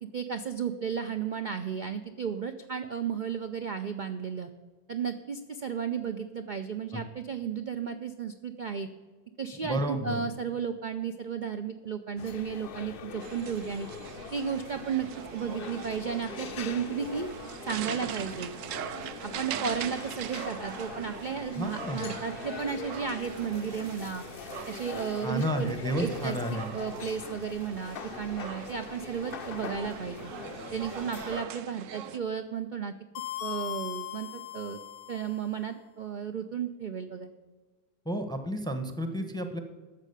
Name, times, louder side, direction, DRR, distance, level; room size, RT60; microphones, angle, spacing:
voice 1, 0.0-4.5 4.9-8.9 9.4-13.9 14.3-17.3 17.7-18.5 19.2-24.2 24.7-30.3 30.7-32.9 33.4-34.8 35.1-37.3, right 7 dB, 85° right, 7 dB, 0.4 m, -34 dB
voice 2, 9.6-10.2 21.6-22.0 25.2-26.7 38.0-39.6, equal, 5° left, 7 dB, 0.6 m, -31 dB
sound 1, 12.2-31.4, left 6 dB, 60° left, 0.6 m, -42 dB
sound 2, 13.2-32.2, right 9 dB, 65° right, 0.8 m, -42 dB
sound 3, 33.1-35.5, left 14 dB, 80° left, 1.1 m, -39 dB
12.5 x 7.4 x 6.6 m, 1.4 s
omnidirectional pair, 1.7 m